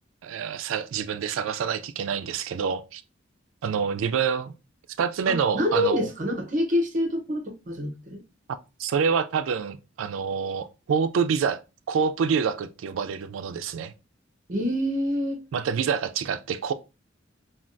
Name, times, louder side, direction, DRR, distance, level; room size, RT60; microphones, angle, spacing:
voice 1, 0.2-3.0 3.6-4.5 5.0-6.1 8.8-11.6 11.9-13.9 15.5-16.7, right 6 dB, 85° right, 0.3 m, -27 dB
voice 2, 5.3-8.2 14.5-15.4, left 1 dB, 40° right, 0.7 m, -26 dB
3.3 x 2.3 x 2.5 m
head